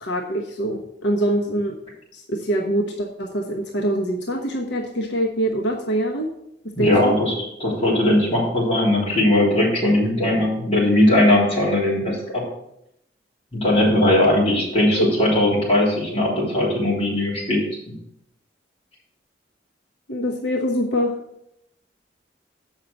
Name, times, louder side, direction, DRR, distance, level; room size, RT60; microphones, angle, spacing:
voice 1, 0.0-1.7 2.1-6.3 6.8-7.2 15.0-15.1 20.1-21.1, right 1 dB, 85° left, 0 dB, 1.1 m, -24 dB
voice 2, 6.8-12.4 13.5-17.6, left 1 dB, 35° left, -6 dB, 3.6 m, -19 dB
7.5 x 5.6 x 6.6 m, 0.79 s
head